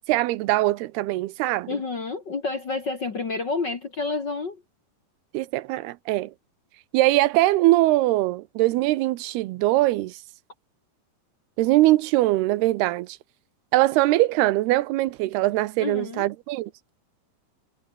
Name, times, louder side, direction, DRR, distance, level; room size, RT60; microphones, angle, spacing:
voice 1, 0.1-1.7 5.3-6.3 6.9-10.2 11.6-13.2 13.7-16.7, right 17 dB, 85° right, 2.8 m, -22 dB
voice 2, 1.7-4.6 15.8-16.3, left 3 dB, 40° left, 1.6 m, -29 dB
omnidirectional pair, 4.6 m